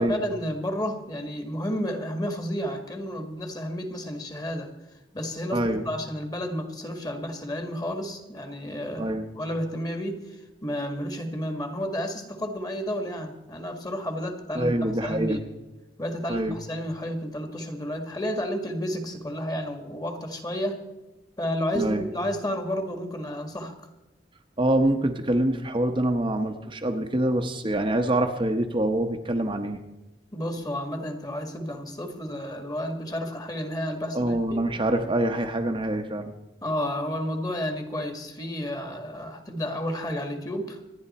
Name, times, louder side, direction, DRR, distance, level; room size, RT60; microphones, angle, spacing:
voice 1, 0.0-4.7 5.1-15.4 16.0-20.8 21.4-23.7 30.3-34.6 36.6-40.8, equal, 20° left, 5 dB, 1.6 m, -31 dB
voice 2, 5.5-5.8 9.0-9.2 14.5-15.4 16.3-16.6 21.7-22.1 24.6-29.8 34.1-36.3, right 1 dB, 30° right, 4 dB, 0.9 m, -25 dB
26.0 x 10.0 x 4.2 m, 1.0 s
head